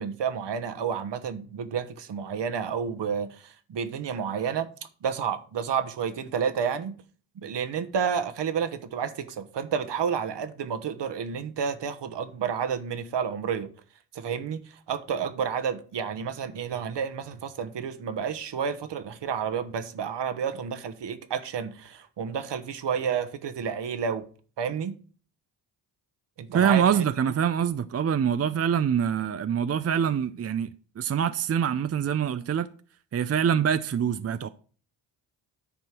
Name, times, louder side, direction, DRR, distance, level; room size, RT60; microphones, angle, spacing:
voice 1, 0.0-4.7 5.0-6.9 7.4-13.7 14.1-24.2 24.6-24.9 26.4-27.0, right 7 dB, 60° right, 1.2 m, -30 dB
voice 2, 26.5-32.7 33.1-34.5, right 8 dB, 30° right, 0.5 m, -25 dB
10.0 x 4.5 x 5.9 m
hypercardioid pair, 45°, 48 cm